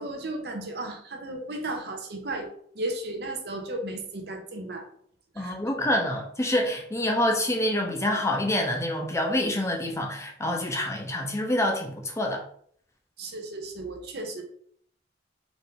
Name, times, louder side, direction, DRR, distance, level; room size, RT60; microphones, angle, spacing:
voice 1, 0.0-2.5 2.7-4.9 5.3-5.6 13.2-14.4, right 2 dB, 60° right, 3 dB, 0.8 m, -34 dB
voice 2, 5.4-12.4, left 1 dB, 15° left, 2 dB, 0.6 m, -27 dB
4.0 x 2.6 x 3.7 m, 0.62 s
head